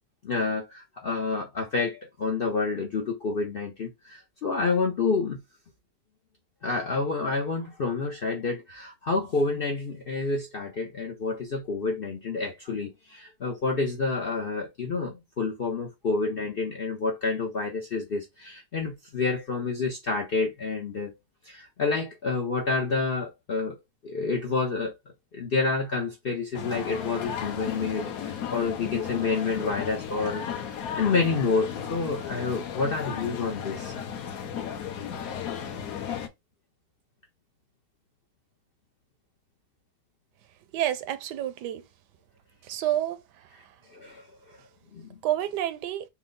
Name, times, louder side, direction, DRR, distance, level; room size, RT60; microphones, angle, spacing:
voice 1, 0.2-5.4 6.6-21.1 21.4-23.8 24.0-25.0 25.3-33.9 43.9-44.6 44.9-45.2, left 4 dB, 80° left, 0.5 m, -29 dB
sound 1, 26.5-36.3, left 8 dB, 65° left, 1.0 m, -34 dB
voice 2, 40.7-41.8 42.6-43.2 45.2-46.0, right 12 dB, 75° right, 1.1 m, -28 dB
4.4 x 2.0 x 3.7 m
omnidirectional pair, 2.0 m